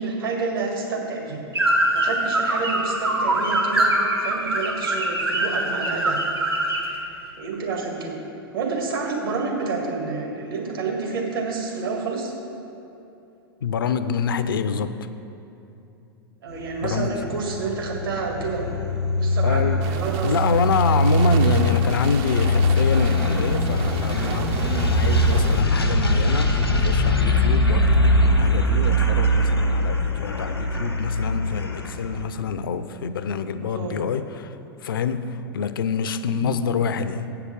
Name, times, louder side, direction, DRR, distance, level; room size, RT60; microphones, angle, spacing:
voice 1, 0.0-1.4 1.9-3.9 4.2-6.2 6.8-7.1 7.4-8.2 8.5-12.3 16.4-18.6 19.2-20.3 33.6-34.0 36.3-36.5, right 4 dB, 65° right, 0 dB, 1.9 m, -29 dB
sound 1, 1.5-6.9, right 1 dB, 85° right, 1.2 m, -23 dB
voice 2, 13.6-15.0 16.8-17.2 19.4-19.8 20.2-34.5 34.8-37.3, left 6 dB, 65° left, 12 dB, 0.4 m, -26 dB
sound 2, 16.6-32.2, left 1 dB, 90° left, 1.0 m, -21 dB
sound 3, 19.8-25.6, right 8 dB, 40° right, 0.5 m, -34 dB
8.0 x 5.9 x 7.2 m, 2.8 s
figure-of-eight pair, 95°, 13 cm